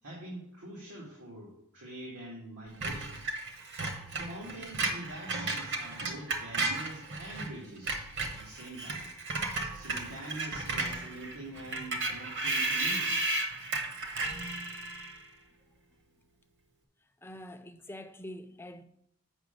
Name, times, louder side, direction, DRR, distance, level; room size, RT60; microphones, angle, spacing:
voice 1, 0.0-3.2 4.1-9.0 9.7-13.7, right 1 dB, 90° right, 2.1 m, -45 dB
Screech, 2.8-7.5 7.8-15.2, right 2 dB, 55° right, 1.2 m, -34 dB
voice 2, 14.3-14.9 17.2-18.8, left 1 dB, 10° left, 0.5 m, -47 dB
8.0 x 5.6 x 5.2 m
head